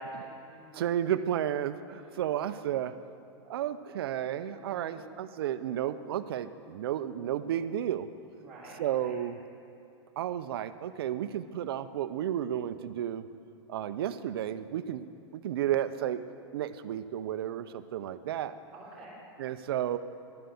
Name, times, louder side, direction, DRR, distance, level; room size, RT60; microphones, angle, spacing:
voice 1, 0.0-0.9 1.9-2.3 4.5-5.1 8.3-9.1 18.7-19.1, right 1 dB, ahead, -11 dB, 2.9 m, -47 dB
voice 2, 0.7-3.0 3.5-8.1 8.8-9.4 10.2-13.3 13.7-15.1 15.3-16.2 16.5-18.6 19.4-20.0, right 11 dB, 55° right, 12 dB, 0.5 m, -32 dB
12.0 x 7.5 x 7.0 m, 2.8 s
supercardioid pair, 175°, 15 cm